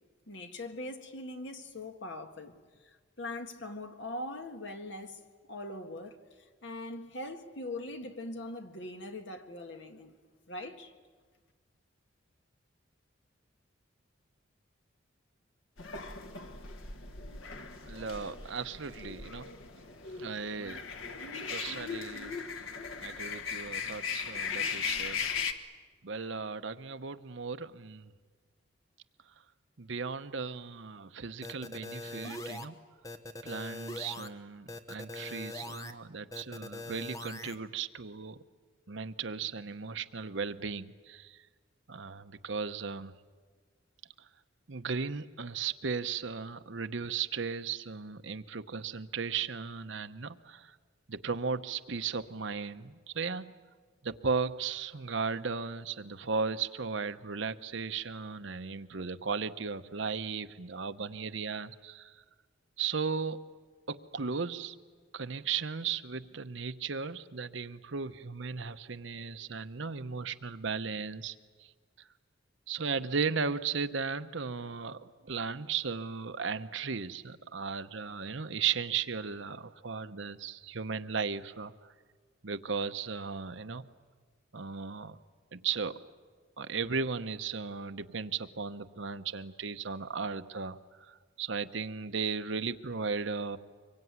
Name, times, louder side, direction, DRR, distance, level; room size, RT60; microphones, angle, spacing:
voice 1, 0.3-5.2 5.5-10.1 10.5-10.9, left 1 dB, 65° left, 1.7 m, -42 dB
sound 1, 15.8-25.5, left 6 dB, 80° left, 1.5 m, -38 dB
voice 2, 17.8-19.5 20.2-20.8 21.5-22.3 23.0-25.3 26.0-28.1 29.8-32.8 33.4-38.4 38.9-41.4 41.9-43.2 44.7-50.8 51.1-53.5 54.0-62.2 62.8-63.4 63.9-64.8 65.1-71.3 71.6-71.7 72.7-81.7 82.4-83.8 84.5-85.2 85.5-86.0 86.6-90.8 91.1-93.6, right 5 dB, 70° right, 0.9 m, -36 dB
sound 2, 31.4-32.7 33.0-34.3 34.7-35.9 36.3-37.6, left 1 dB, 15° left, 1.1 m, -42 dB
24.5 x 22.5 x 9.5 m
head